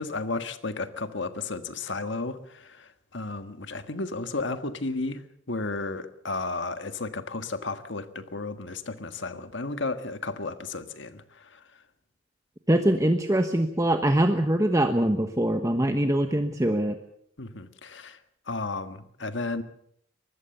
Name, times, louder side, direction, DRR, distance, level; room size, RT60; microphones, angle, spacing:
voice 1, 0.0-5.2 5.5-11.6 17.4-18.2 18.5-19.6, left 3 dB, 60° left, 1.6 m, -33 dB
voice 2, 12.7-17.0, right 1 dB, 15° right, 1.1 m, -23 dB
23.5 x 20.0 x 6.9 m
head